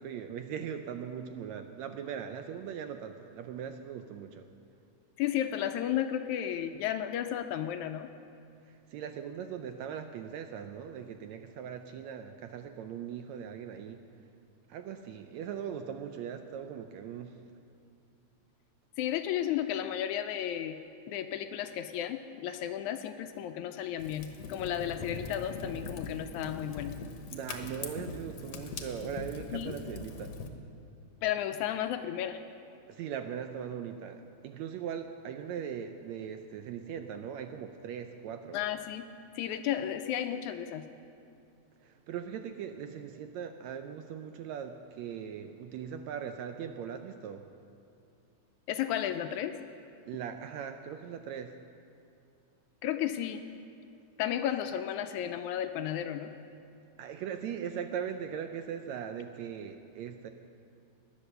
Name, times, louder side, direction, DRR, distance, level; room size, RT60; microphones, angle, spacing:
voice 1, 0.0-4.4 8.9-14.0 14.7-17.4 27.3-30.3 32.9-38.6 41.8-47.4 50.1-51.5 57.0-60.3, right 8 dB, 75° right, 7 dB, 1.7 m, -40 dB
voice 2, 5.2-8.1 19.0-20.8 21.1-26.9 29.5-29.8 31.2-32.4 38.5-39.0 39.4-40.8 48.7-49.6 52.8-53.4 54.2-56.3, left 11 dB, 80° left, 8 dB, 1.8 m, -33 dB
Fire, 24.0-30.5, left 4 dB, 65° left, 2.0 m, -41 dB
18.5 x 11.0 x 6.7 m, 2.6 s
omnidirectional pair, 3.7 m